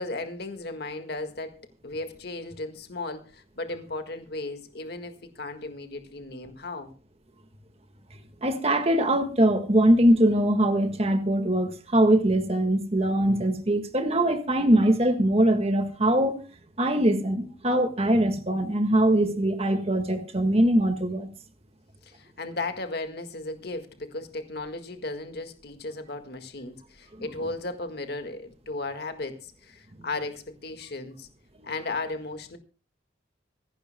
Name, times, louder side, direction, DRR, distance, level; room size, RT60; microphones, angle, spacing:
voice 1, 0.0-6.9 22.0-31.3 31.6-32.6, left 2 dB, 55° left, 1.8 m, -35 dB
voice 2, 8.4-16.4 16.8-21.3 29.9-30.0, right 1 dB, 35° right, 1.7 m, -22 dB
25.5 x 11.5 x 2.2 m
head